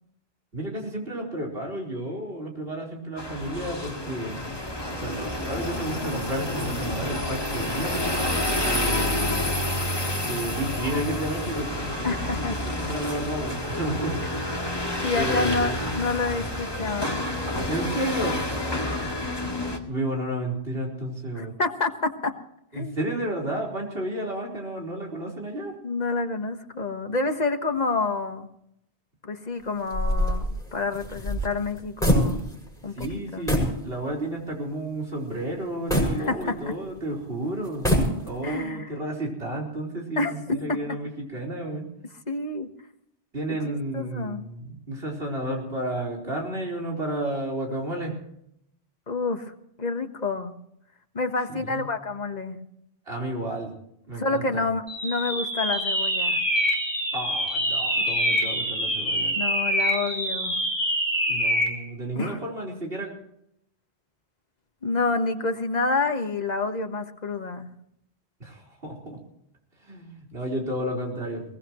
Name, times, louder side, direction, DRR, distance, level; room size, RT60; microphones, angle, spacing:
voice 1, 0.5-4.4 4.9-7.9 8.6-9.4 10.2-14.2 15.2-15.8 17.7-18.9 19.9-21.5 22.7-25.8 33.0-37.9 38.2-41.9 43.3-48.2 51.5-51.9 53.1-53.7 54.1-54.6 57.1-59.3 61.3-63.1 68.4-69.2 69.8-71.4, right 1 dB, 70° right, -1 dB, 4.7 m, -32 dB
sound 1, 3.2-19.8, left 1 dB, 25° left, 2.1 m, -29 dB
voice 2, 12.0-12.6 15.0-17.3 21.3-22.3 22.7-22.9 25.8-28.5 29.2-32.4 32.8-33.7 36.1-36.6 38.4-38.9 40.2-40.8 42.3-42.7 43.5-44.4 49.1-49.5 49.8-50.5 51.1-52.6 54.1-56.4 59.3-60.6 62.1-62.4 64.8-67.7, left 3 dB, 40° left, 6 dB, 1.5 m, -28 dB
sound 2, 29.9-32.7 33.0-33.1 33.5-33.8 34.3-34.4 35.9-36.9 37.6-38.5, equal, 5° left, 6.7 m, -24 dB
sound 3, 54.9-61.8, equal, 25° right, 2.9 m, -25 dB
22.5 x 18.5 x 3.1 m, 0.76 s
omnidirectional pair, 1.1 m